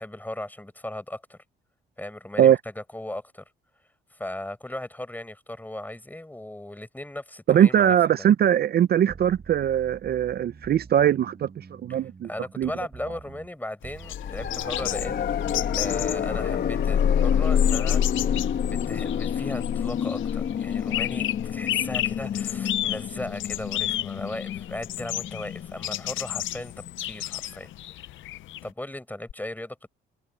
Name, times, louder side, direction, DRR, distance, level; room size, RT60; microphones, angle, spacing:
voice 1, 0.0-1.4 2.0-3.4 4.1-8.2 12.2-15.3 15.7-18.0 18.3-27.7 28.6-29.9, left 1 dB, 10° left, 5.7 m, -37 dB
voice 2, 7.5-12.3 12.6-12.7, right 10 dB, 55° right, 0.5 m, -21 dB
sound 1, 9.1-14.2 14.4-19.2, right 5 dB, 35° right, 1.6 m, -46 dB
sound 2, 13.8-28.7, left 14 dB, 75° left, 0.6 m, -33 dB
sound 3, 14.1-26.9 29.3-29.4, left 8 dB, 55° left, 1.2 m, -27 dB
cardioid pair, 90°, 20 cm